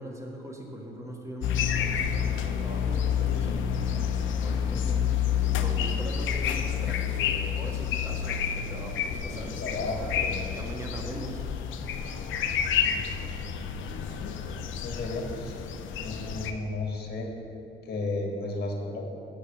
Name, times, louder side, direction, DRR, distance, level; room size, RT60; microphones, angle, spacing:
voice 1, 0.0-5.3 5.6-11.5, right 1 dB, 15° right, 0 dB, 1.4 m, -41 dB
sound 1, 1.4-16.5, left 8 dB, 80° left, 0.6 m, -29 dB
voice 2, 9.0-10.4 12.8-13.3 14.8-15.6 16.0-17.3 17.8-19.1, left 2 dB, 55° left, 1 dB, 1.5 m, -34 dB
6.5 x 5.8 x 6.8 m, 2.7 s
cardioid pair, 90°, 20 cm